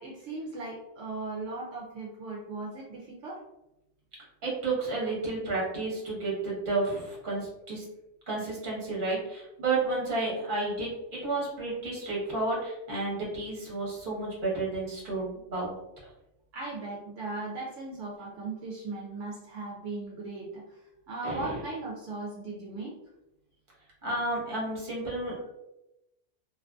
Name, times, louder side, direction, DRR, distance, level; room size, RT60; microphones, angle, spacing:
voice 1, 0.0-3.4 16.5-20.8 21.1-22.9, right 3 dB, 75° right, -3 dB, 0.9 m, -38 dB
voice 2, 4.4-7.8 8.3-15.7 21.2-21.6 24.0-25.5, right 3 dB, 45° right, -4 dB, 1.0 m, -31 dB
2.5 x 2.4 x 2.2 m, 0.91 s
omnidirectional pair, 1.3 m